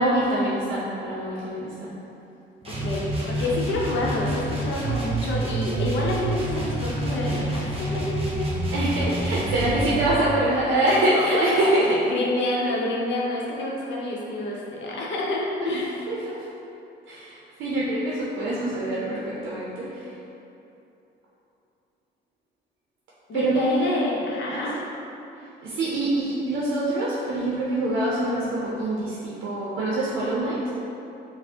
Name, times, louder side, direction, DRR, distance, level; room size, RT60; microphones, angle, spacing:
voice 1, 0.0-1.9 8.7-11.9 15.6-16.4 17.1-20.1 23.3-23.8 24.5-24.7 25.6-30.6, right 1 dB, 85° right, -6 dB, 0.5 m, -25 dB
sound 1, 2.6-10.1, right 1 dB, 30° right, 0.8 m, -28 dB
voice 2, 2.7-8.5 11.1-15.9 23.3-24.7, left 2 dB, 70° left, -4 dB, 0.7 m, -28 dB
4.1 x 2.0 x 2.7 m, 2.8 s
cardioid pair, 90°, 20 cm